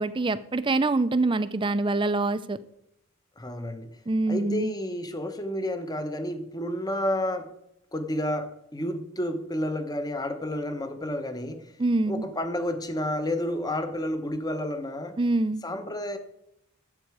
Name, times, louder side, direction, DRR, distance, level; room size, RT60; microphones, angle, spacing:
voice 1, 0.0-2.6 4.1-4.7 11.8-12.2 15.2-15.6, right 2 dB, 20° right, 0.4 m, -25 dB
voice 2, 3.4-4.0 4.3-7.5 7.9-11.7 12.1-15.2 15.6-16.2, left 1 dB, 15° left, 0.9 m, -30 dB
11.0 x 8.3 x 4.8 m
head